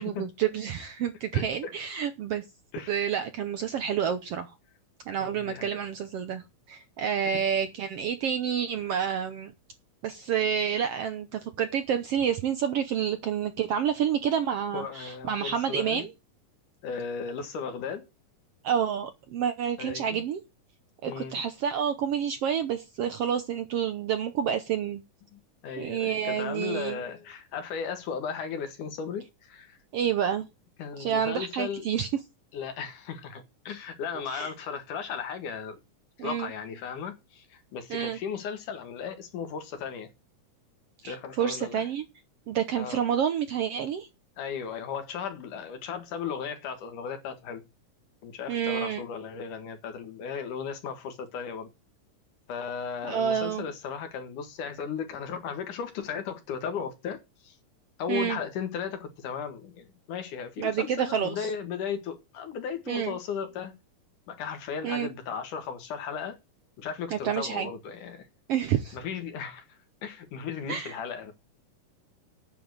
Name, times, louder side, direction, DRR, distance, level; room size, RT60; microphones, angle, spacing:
voice 1, 0.0-2.5 2.9-4.5 5.1-9.5 10.0-16.1 18.6-20.4 21.0-25.0 25.8-27.0 29.9-30.5 31.0-32.1 34.3-34.5 36.2-36.5 37.9-38.2 41.0-42.1 42.5-44.1 48.5-49.0 53.0-53.7 58.1-58.4 60.6-61.5 62.9-63.2 64.8-65.1 67.1-67.7 68.5-69.0 70.7-71.0, right 8 dB, 70° right, 1.5 m, -29 dB
voice 2, 1.3-1.7 2.7-3.0 5.2-5.8 7.3-7.4 14.7-16.1 16.8-18.1 19.8-20.1 21.1-21.4 25.3-29.8 30.8-31.9 32.5-35.8 36.2-40.1 41.0-41.9 42.8-43.0 44.4-47.6 48.2-51.7 52.5-57.6 58.0-63.7 64.3-66.4 66.8-68.3 68.9-71.3, left 6 dB, 75° left, 3.3 m, -36 dB
9.2 x 7.0 x 7.9 m
omnidirectional pair, 3.7 m